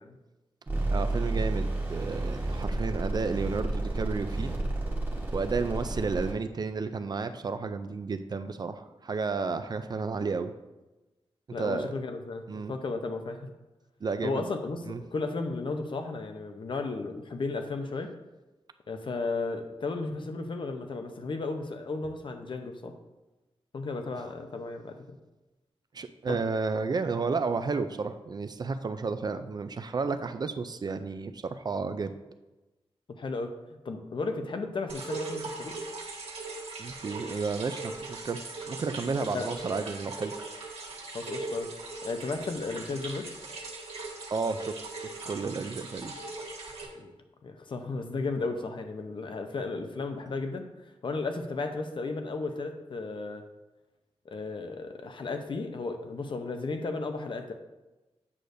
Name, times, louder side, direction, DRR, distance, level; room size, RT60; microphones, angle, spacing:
sound 1, 0.7-6.3, right 2 dB, 20° right, 1.2 m, -31 dB
voice 1, 0.9-4.5 5.3-10.5 11.6-11.9 12.5-12.7 14.0-14.5 14.9-15.0 25.9-32.1 36.8-40.3 44.3-44.7 45.0-46.1, right 4 dB, 40° right, 10 dB, 0.3 m, -32 dB
voice 2, 11.5-13.5 14.2-14.9 15.1-18.1 18.9-22.9 23.7-24.9 26.3-26.4 33.2-33.5 33.8-35.7 39.1-39.5 41.1-41.7 42.0-43.3 47.0-47.1 47.4-50.7 51.0-53.4 54.3-57.5, left 3 dB, 55° left, 6 dB, 0.6 m, -34 dB
sound 2, 34.9-46.9, right 3 dB, 85° right, 1.5 m, -40 dB
8.4 x 6.4 x 2.6 m, 1.1 s
wide cardioid pair, 165°, 10 cm